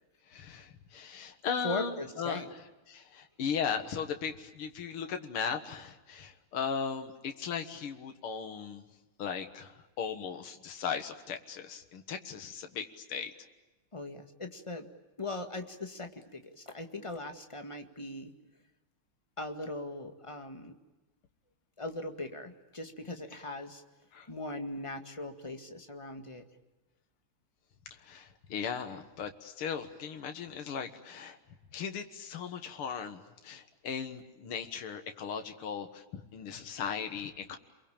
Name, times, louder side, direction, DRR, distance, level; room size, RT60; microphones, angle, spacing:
voice 1, 0.3-2.4 2.9-8.8 9.2-13.3 24.1-24.3 27.9-31.4 31.7-37.6, left 6 dB, 80° left, 6 dB, 2.4 m, -37 dB
voice 2, 1.6-2.5 13.9-14.9 15.2-18.3 19.4-20.8 21.8-23.8 24.3-26.4, left 2 dB, 15° left, 5 dB, 1.8 m, -39 dB
29.5 x 22.5 x 8.8 m, 1.1 s
omnidirectional pair, 2.4 m